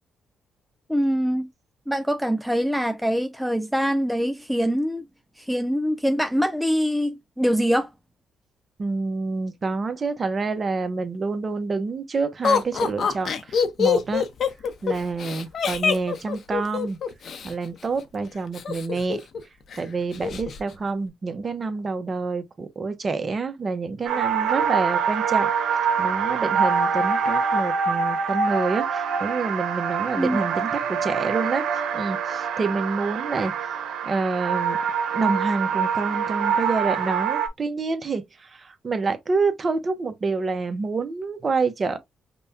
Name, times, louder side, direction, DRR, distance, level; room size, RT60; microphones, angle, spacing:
voice 1, 0.9-1.5 1.9-5.1 5.4-7.9 30.2-30.4, equal, ahead, 0.3 m, -24 dB
voice 2, 8.8-14.3 14.8-17.0 17.4-19.2 19.8-25.5 26.0-31.6 31.9-33.5 34.0-34.8 35.1-42.0, right 4 dB, 30° right, 0.8 m, -27 dB
Laughter, 12.4-17.5 18.5-19.4 19.7-19.8 20.1-20.6, left 6 dB, 55° left, 0.7 m, -24 dB
sound 1, 24.1-37.5, right 6 dB, 85° right, 0.8 m, -25 dB
5.3 x 2.2 x 2.7 m
cardioid pair, 115°, 0 cm